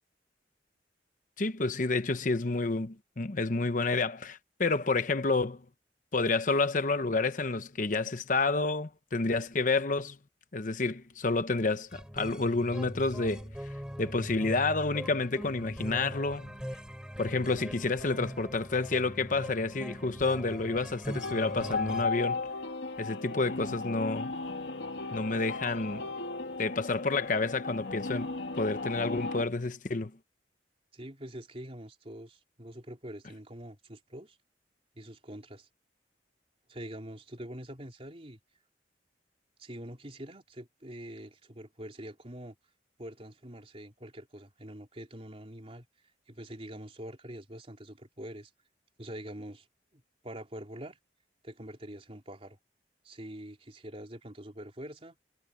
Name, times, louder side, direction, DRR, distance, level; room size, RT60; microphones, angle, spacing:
voice 1, 1.4-5.6 6.1-10.2 10.5-13.5 14.0-16.6 17.2-22.5 23.0-24.3 25.1-26.1 26.6-30.1, left 3 dB, 45° left, 0.9 m, -29 dB
sound 1, 11.9-22.1, equal, 5° right, 3.2 m, -41 dB
sound 2, 21.1-29.4, left 3 dB, 80° left, 1.9 m, -36 dB
voice 2, 30.9-34.4 35.0-35.7 36.7-38.4 39.6-42.6 43.0-45.9 46.3-48.5 49.0-49.7 49.9-51.0 51.4-52.6 53.0-55.2, right 1 dB, 35° right, 3.5 m, -45 dB
head